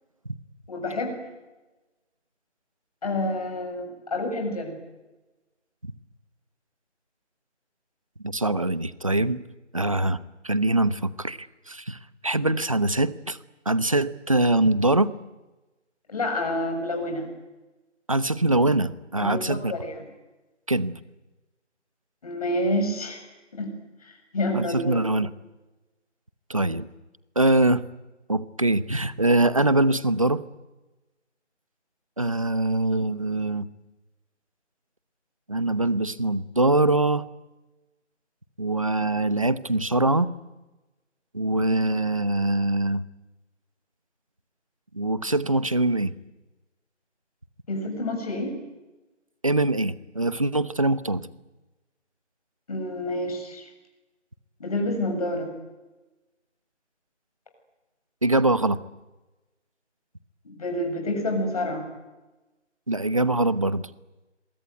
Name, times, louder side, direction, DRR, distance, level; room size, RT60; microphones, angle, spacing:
voice 1, 0.7-1.2 3.0-4.8 16.1-17.3 19.2-20.0 22.2-23.2 23.5-23.7 24.0-25.0 47.7-48.5 52.7-53.7 54.6-55.5 60.4-61.9, left 1 dB, 30° left, 3 dB, 7.1 m, -28 dB
voice 2, 8.2-9.4 9.7-10.2 10.4-13.4 13.7-15.1 18.1-19.7 20.7-20.9 24.5-25.3 26.5-26.9 27.4-27.8 28.3-30.4 32.2-33.7 35.5-37.2 38.6-40.3 41.3-43.0 44.9-46.1 49.4-51.3 58.2-58.8 62.9-63.9, right 2 dB, 30° right, 17 dB, 0.9 m, -23 dB
27.0 x 23.0 x 9.4 m, 1.1 s
figure-of-eight pair, 175°, 36 cm